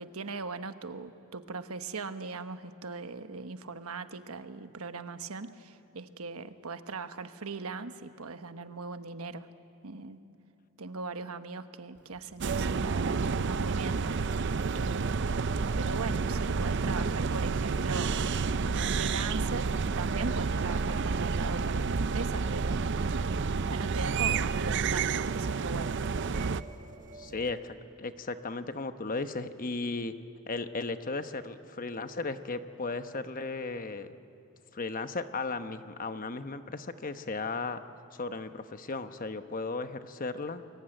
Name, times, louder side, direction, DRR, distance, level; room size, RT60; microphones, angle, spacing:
voice 1, 0.0-9.5 9.8-10.2 10.8-14.0 14.7-15.4 15.7-18.2 18.6-22.9 23.7-26.0, right 4 dB, 80° right, 9 dB, 1.2 m, -39 dB
sound 1, 11.9-14.3 15.2-16.7 17.1-18.9 19.2-19.3 19.8-21.6 22.0-22.1 22.3-22.4 22.7-23.0 23.8-24.4 24.7-27.5, right 3 dB, 35° right, 1.5 m, -52 dB
sound 2, 12.4-26.6, right 4 dB, 55° right, 0.5 m, -30 dB
voice 2, 27.1-30.1 30.5-34.1 34.7-37.8 38.1-40.6, left 3 dB, 40° left, 9 dB, 1.0 m, -35 dB
29.0 x 22.0 x 9.1 m, 2.7 s
head